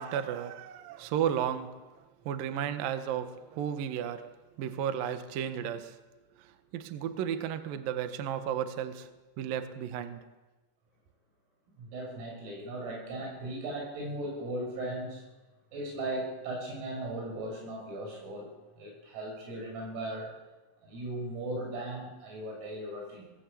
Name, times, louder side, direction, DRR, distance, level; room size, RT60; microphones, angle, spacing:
voice 1, 0.0-1.8 2.3-4.3 4.6-6.0 6.7-9.1 9.4-10.2, right 9 dB, 70° right, 2.2 m, -33 dB
voice 2, 11.7-15.3 15.7-20.3 20.8-23.3, right 1 dB, 90° right, 9.1 m, -37 dB
20.5 x 19.0 x 8.5 m
omnidirectional pair, 6.0 m